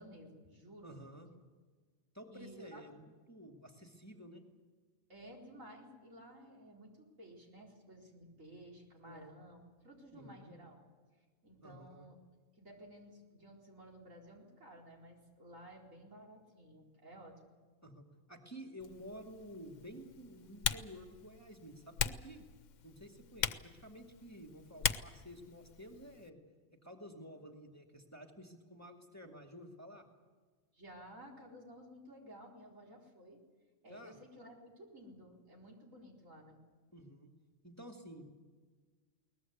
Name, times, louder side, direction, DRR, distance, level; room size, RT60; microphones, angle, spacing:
voice 1, 0.0-1.0 2.3-2.8 5.1-10.8 11.4-12.2 12.6-17.5 30.7-33.4 33.8-36.6, equal, 70° right, -1 dB, 4.7 m, -54 dB
voice 2, 0.8-1.3 2.1-4.4 9.0-9.3 10.1-10.6 11.6-12.1 17.8-22.4 22.8-26.4 26.8-30.1 33.9-34.2 36.9-37.3 37.6-38.3, equal, 10° left, 2 dB, 2.1 m, -52 dB
Typing, 18.8-26.3, left 8 dB, 65° left, 1.2 m, -41 dB
22.0 x 19.5 x 8.1 m, 1.4 s
omnidirectional pair, 1.4 m